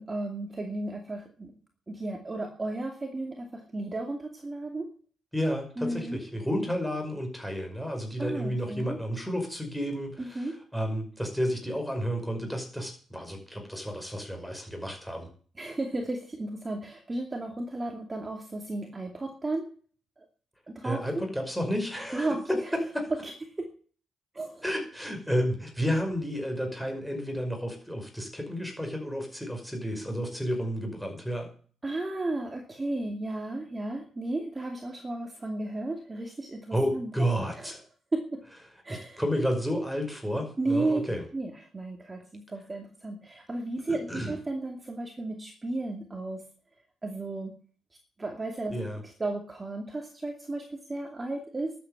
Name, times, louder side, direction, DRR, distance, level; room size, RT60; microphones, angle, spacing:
voice 1, 0.0-1.5 1.9-4.9 5.8-6.2 8.2-9.0 10.2-10.6 15.6-19.7 20.2-20.3 20.7-21.2 22.1-22.7 23.2-23.3 23.6-23.7 24.3-24.6 31.8-37.1 37.6-37.7 38.1-38.4 38.8-39.2 40.6-41.0 41.3-46.4 47.0-47.5 48.2-48.7 49.2-51.7, right 2 dB, 25° right, 3 dB, 2.5 m, -34 dB
voice 2, 5.3-15.3 20.8-23.1 24.6-31.5 36.7-37.8 38.9-41.3 43.9-44.3 48.7-49.0, equal, ahead, 3 dB, 5.4 m, -31 dB
12.5 x 8.5 x 8.2 m, 0.43 s
cardioid pair, 90°, 0 cm